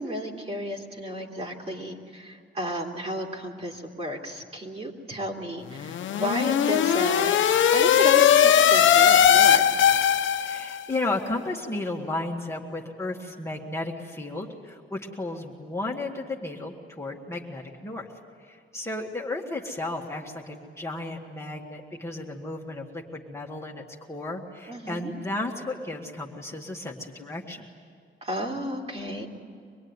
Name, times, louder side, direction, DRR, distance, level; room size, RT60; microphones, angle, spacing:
voice 1, 0.0-7.3 7.7-9.8 24.7-25.1 28.2-29.3, equal, 35° right, 0 dB, 3.0 m, -33 dB
sound 1, 5.8-10.8, left 9 dB, 90° left, 0.9 m, -19 dB
voice 2, 10.3-18.1 18.4-27.7, left 2 dB, 15° left, -2 dB, 1.9 m, -34 dB
25.0 x 21.0 x 9.7 m, 2.3 s
wide cardioid pair, 145°, 19 cm